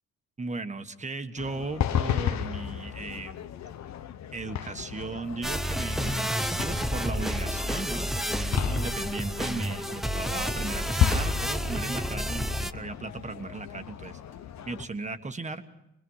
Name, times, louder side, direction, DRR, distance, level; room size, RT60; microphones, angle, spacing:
voice 1, 0.4-3.4 4.3-14.2 14.6-15.6, right 3 dB, 25° right, 8 dB, 1.5 m, -36 dB
sound 1, 1.4-14.8, left 9 dB, 65° left, 1.0 m, -34 dB
sound 2, 5.4-12.7, equal, ahead, 0.7 m, -30 dB
25.5 x 20.5 x 5.7 m, 0.84 s
cardioid pair, 90°, 30 cm